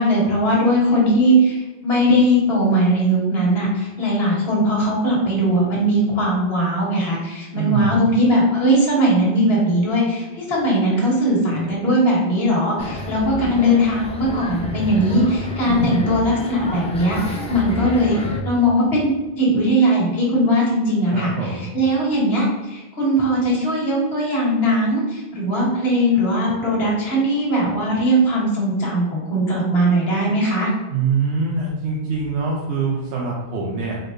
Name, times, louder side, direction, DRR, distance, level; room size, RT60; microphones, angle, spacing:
voice 1, 0.0-1.6 1.8-18.2 18.4-30.7, equal, 70° left, -4 dB, 1.4 m, -19 dB
voice 2, 7.5-8.0 15.6-16.0 21.1-21.7 30.9-34.0, right 4 dB, 85° right, -3 dB, 0.9 m, -24 dB
sound 1, 12.8-18.4, left 1 dB, 10° left, 0.3 m, -30 dB
4.1 x 3.2 x 2.6 m, 1.1 s
omnidirectional pair, 1.1 m